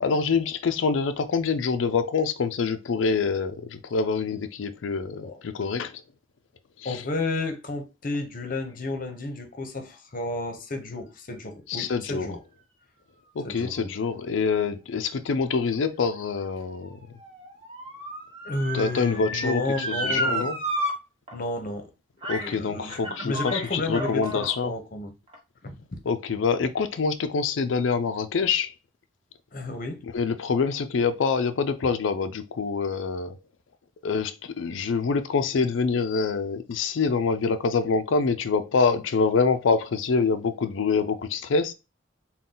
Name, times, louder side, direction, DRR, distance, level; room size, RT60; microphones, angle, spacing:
voice 1, 0.0-5.9 6.8-7.0 11.7-12.3 13.4-17.0 18.7-19.6 19.9-20.6 22.3-24.7 26.1-28.7 30.1-33.4 34.0-41.7, left 5 dB, 85° left, 0.4 m, -25 dB
voice 2, 6.8-12.4 13.4-13.9 18.4-20.5 21.3-21.9 22.4-25.1 25.6-25.7 29.5-30.0, left 2 dB, 45° left, 0.9 m, -32 dB
Motor vehicle (road) / Siren, 15.7-20.9 21.3-21.4 22.2-22.6 22.9-24.6 25.3-25.4, right 1 dB, 30° right, 1.1 m, -32 dB
3.8 x 2.2 x 3.8 m
head